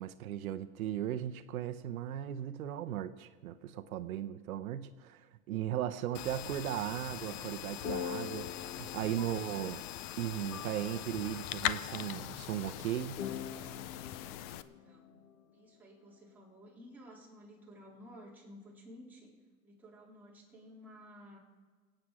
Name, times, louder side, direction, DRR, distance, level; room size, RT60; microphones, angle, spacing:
voice 1, 0.0-9.8 10.2-13.2, right 11 dB, 85° right, 9 dB, 0.9 m, -37 dB
sound 1, 6.1-14.6, left 12 dB, 30° left, 0.4 m, -41 dB
sound 2, 7.8-16.4, left 8 dB, 85° left, 1.8 m, -46 dB
voice 2, 14.6-15.2 15.5-19.3 19.6-21.4, equal, 5° right, -6 dB, 3.8 m, -54 dB
23.5 x 8.9 x 4.9 m, 1.4 s
supercardioid pair, 145°, 41 cm